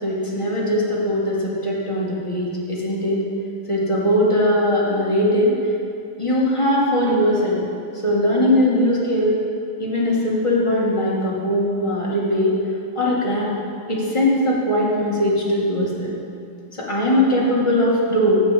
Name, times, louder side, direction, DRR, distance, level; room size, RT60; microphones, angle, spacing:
voice 1, 0.0-3.2 3.7-5.6 6.2-7.6 8.0-9.3 9.8-12.5 13.0-13.5 13.9-16.1 16.7-18.4, left 1 dB, 15° left, -5 dB, 1.9 m, -20 dB
15.0 x 5.6 x 5.2 m, 2.5 s
omnidirectional pair, 1.9 m